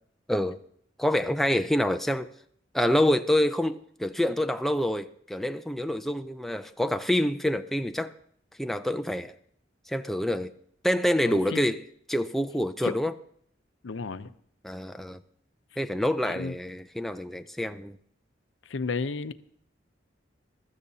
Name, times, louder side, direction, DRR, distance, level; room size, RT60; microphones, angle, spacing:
voice 1, 1.0-2.3 2.7-8.1 8.6-9.3 9.9-10.5 10.8-11.8 12.1-13.1 14.6-15.2 15.8-18.0, left 1 dB, ahead, 0.4 m, -27 dB
voice 2, 11.2-11.7 12.8-12.9 13.8-14.3 16.3-16.5 18.6-19.3, left 4 dB, 80° left, 0.6 m, -33 dB
21.0 x 13.5 x 2.8 m
head